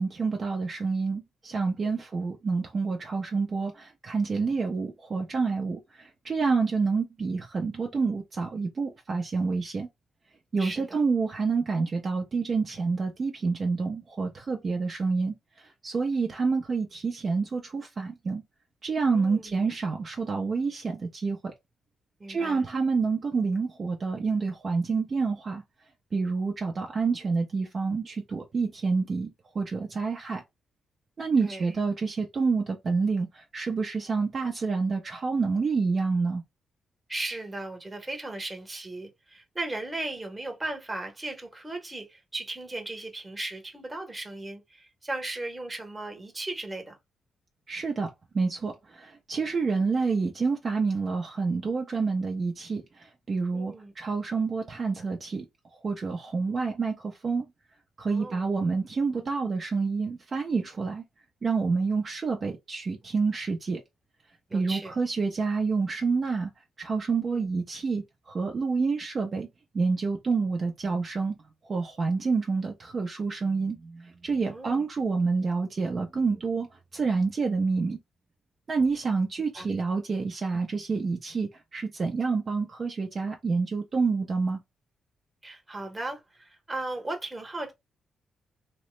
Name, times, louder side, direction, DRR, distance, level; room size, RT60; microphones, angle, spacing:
voice 1, 0.0-9.9 10.5-18.4 18.8-21.5 22.3-25.6 26.1-30.4 31.2-36.4 47.7-57.4 58.0-61.0 61.4-63.8 64.5-66.5 66.8-69.5 69.7-71.4 71.6-78.0 78.7-84.6, right 4 dB, 40° right, 0.5 m, -28 dB
voice 2, 10.6-11.0 19.1-19.6 22.2-22.7 31.4-31.8 37.1-47.0 53.5-53.9 58.1-58.5 64.5-64.9 67.2-67.5 74.5-74.8 79.5-79.7 85.4-87.7, right 2 dB, 15° right, 0.9 m, -37 dB
3.0 x 2.0 x 3.0 m
cardioid pair, 110°, 0 cm